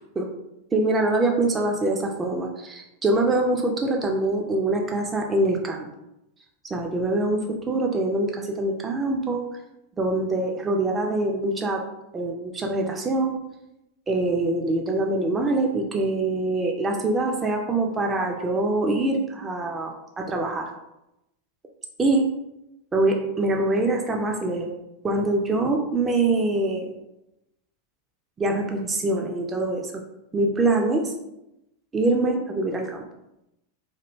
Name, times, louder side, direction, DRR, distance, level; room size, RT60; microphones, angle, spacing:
voice 1, 0.7-5.9 6.6-9.4 10.0-11.8 12.1-13.4 14.1-20.7 22.0-22.3 22.9-24.7 25.0-26.9 28.4-30.0 30.3-31.1 31.9-33.1, right 2 dB, 20° right, 1 dB, 0.3 m, -24 dB
2.4 x 2.1 x 2.9 m, 0.89 s
figure-of-eight pair, 90°, 0 cm